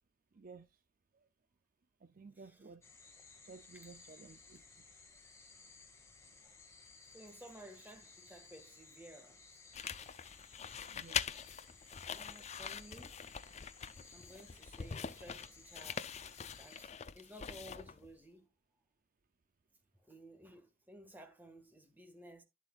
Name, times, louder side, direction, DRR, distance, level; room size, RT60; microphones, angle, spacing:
voice 1, 0.3-0.7 2.0-2.8 3.4-4.7 10.9-11.2, right 4 dB, 40° right, 0.5 m, -54 dB
voice 2, 2.3-2.7 6.4-6.5 7.1-9.4 12.1-13.2 14.1-16.1 16.6-18.5 20.0-22.4, right 1 dB, 10° right, 1.7 m, -55 dB
sound 1, 2.8-16.9, left 4 dB, 15° left, 1.8 m, -59 dB
sound 2, 9.7-18.1, left 7 dB, 35° left, 0.4 m, -43 dB
11.5 x 7.7 x 2.4 m
head